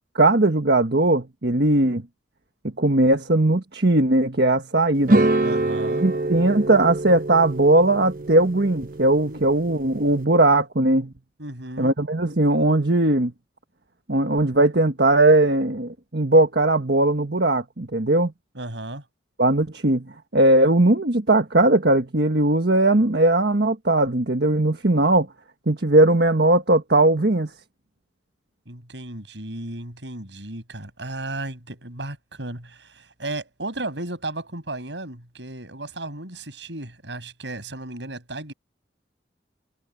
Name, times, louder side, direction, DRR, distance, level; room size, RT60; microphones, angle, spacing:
voice 1, 0.1-2.0 2.8-5.2 6.0-11.1 11.8-13.3 14.1-18.3 19.4-20.1 20.3-25.3 25.7-27.5, right 2 dB, 65° right, 1.5 m, -19 dB
sound 1, 5.1-10.2, right 2 dB, 45° right, 0.8 m, -25 dB
voice 2, 5.4-6.0 9.2-9.4 11.4-11.9 18.5-19.0 28.7-38.5, right 2 dB, 80° right, 6.2 m, -34 dB
head